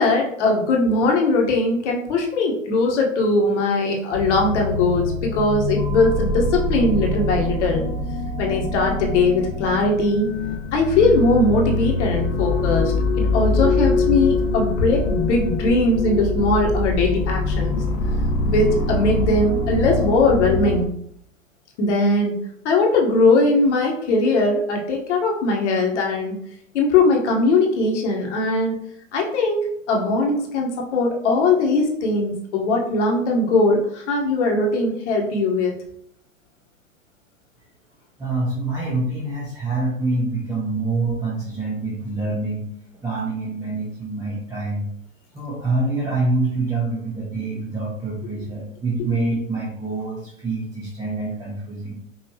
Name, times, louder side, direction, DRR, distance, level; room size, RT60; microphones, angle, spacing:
voice 1, 0.0-7.8 8.4-10.3 10.7-17.8 18.4-20.9 21.8-22.4 22.6-26.3 26.7-28.8 29.1-35.8, left 2 dB, 60° left, 0 dB, 1.3 m, -20 dB
sound 1, 4.1-20.8, left 2 dB, 45° left, 0.8 m, -24 dB
voice 2, 38.2-42.7 43.0-44.9 45.3-51.9, right 2 dB, 10° right, -6 dB, 1.0 m, -26 dB
5.5 x 2.8 x 2.9 m, 0.69 s
hypercardioid pair, 115°, 40 cm